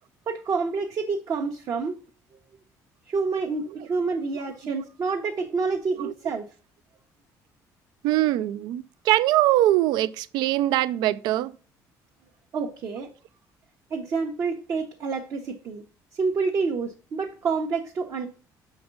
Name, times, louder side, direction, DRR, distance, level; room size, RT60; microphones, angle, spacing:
voice 1, 0.3-2.0 3.1-6.4 12.5-13.1 13.9-15.8 16.2-18.3, right 4 dB, 50° right, 1.0 m, -28 dB
voice 2, 8.0-11.5, right 15 dB, 80° right, 0.3 m, -22 dB
7.0 x 5.2 x 3.9 m
cardioid pair, 130°, 7 cm